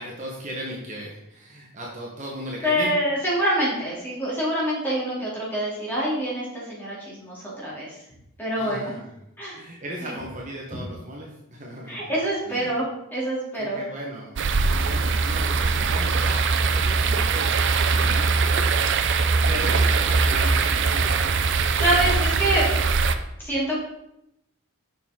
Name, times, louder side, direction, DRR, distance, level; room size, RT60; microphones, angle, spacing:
voice 1, 0.0-2.9 8.6-9.1 9.5-12.1 12.5-12.7 13.5-16.4 16.7-17.5 17.9-18.7 19.0-21.5, right 1 dB, 35° right, -3 dB, 1.1 m, -37 dB
voice 2, 2.6-7.9 8.4-8.9 9.4-9.6 10.0-10.1 11.9-13.8 21.8-22.7 23.4-23.8, right 1 dB, 10° left, -7 dB, 2.9 m, -26 dB
sound 1, 14.4-23.1, right 4 dB, 55° right, 0.5 m, -21 dB
6.8 x 6.3 x 3.7 m, 0.83 s
head